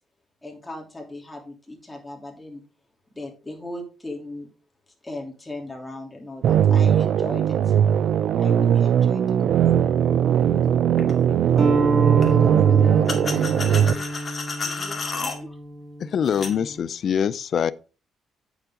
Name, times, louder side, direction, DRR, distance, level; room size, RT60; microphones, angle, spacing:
voice 1, 0.4-2.6 3.1-4.5 5.0-7.7 8.4-9.9, left 1 dB, 15° left, 3.3 m, -37 dB
sound 1, 6.4-13.9, right 9 dB, 70° right, 0.4 m, -19 dB
sound 2, 11.0-11.1 12.2-12.3 13.1-15.4 16.3-16.6, left 4 dB, 35° left, 2.0 m, -31 dB
voice 2, 11.0-11.4 12.3-14.1 14.6-15.5, right 1 dB, 25° right, 5.6 m, -42 dB
sound 3, 11.6-16.8, right 2 dB, 45° right, 2.2 m, -27 dB
voice 3, 16.0-17.7, left 8 dB, 60° left, 0.5 m, -24 dB
8.9 x 7.2 x 3.8 m
cardioid pair, 90°, 0 cm